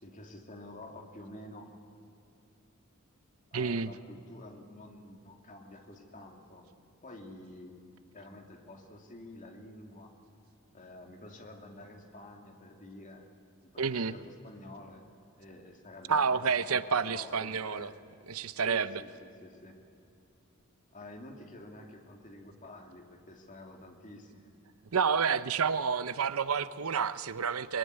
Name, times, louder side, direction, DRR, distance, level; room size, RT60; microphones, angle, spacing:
voice 1, 0.0-1.7 3.5-6.7 7.0-10.2 10.7-13.3 13.6-15.1 15.4-18.0 18.7-19.8 20.9-24.5, left 1 dB, 35° left, 3 dB, 2.6 m, -49 dB
voice 2, 3.5-3.9 13.8-14.1 16.1-17.9 18.3-19.0 24.9-27.8, right 6 dB, 80° right, 14 dB, 0.7 m, -29 dB
23.0 x 22.0 x 9.6 m, 2.6 s
head